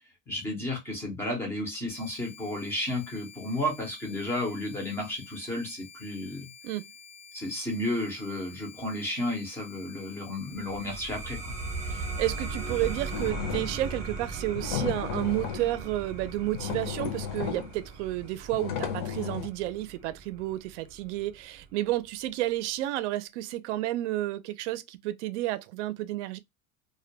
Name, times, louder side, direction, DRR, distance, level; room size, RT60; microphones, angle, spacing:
voice 1, 0.3-6.5 7.3-11.5, left 1 dB, 5° left, 0.4 m, -32 dB
sound 1, 1.9-13.3, left 6 dB, 90° left, 0.9 m, -50 dB
sound 2, 10.5-21.7, right 3 dB, 25° right, 0.7 m, -38 dB
voice 2, 11.9-26.4, right 15 dB, 70° right, 0.5 m, -31 dB
sound 3, 13.1-14.0 14.5-15.8 16.3-16.4 16.5-17.8 18.5-19.5, left 8 dB, 55° left, 0.6 m, -34 dB
2.2 x 2.1 x 2.6 m
supercardioid pair, 175°, 36 cm